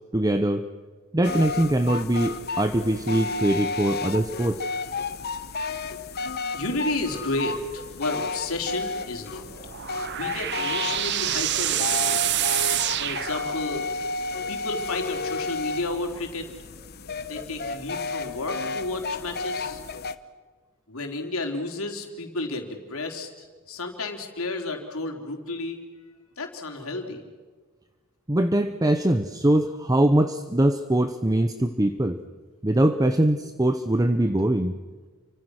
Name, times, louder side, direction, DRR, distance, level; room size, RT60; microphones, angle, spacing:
voice 1, 0.1-0.7 1.1-4.6 28.3-32.2 32.6-34.7, right 1 dB, 15° right, 9 dB, 0.8 m, -22 dB
sound 1, 1.2-20.2, left 3 dB, 45° left, 1.0 m, -32 dB
voice 2, 6.5-9.4 10.1-12.3 12.9-13.8 14.5-16.5 17.3-19.8 20.9-23.3 23.7-25.8 26.4-27.2, left 2 dB, 75° left, 3 dB, 3.7 m, -32 dB
sound 2, 9.4-14.0, right 13 dB, 50° right, 0.7 m, -27 dB
29.5 x 25.0 x 6.4 m, 1.4 s
head